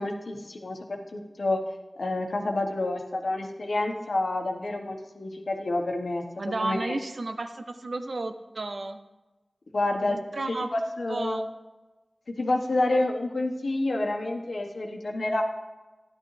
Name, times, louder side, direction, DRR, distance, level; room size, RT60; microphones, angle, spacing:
voice 1, 0.0-1.6 2.0-6.9 9.7-10.2 10.7-11.4 12.3-15.4, left 2 dB, 90° left, 3 dB, 1.2 m, -28 dB
voice 2, 6.4-9.0 10.1-10.7 11.1-11.5, right 2 dB, 75° right, 8 dB, 0.7 m, -32 dB
12.5 x 10.5 x 3.3 m, 1.1 s
wide cardioid pair, 50°, 0 cm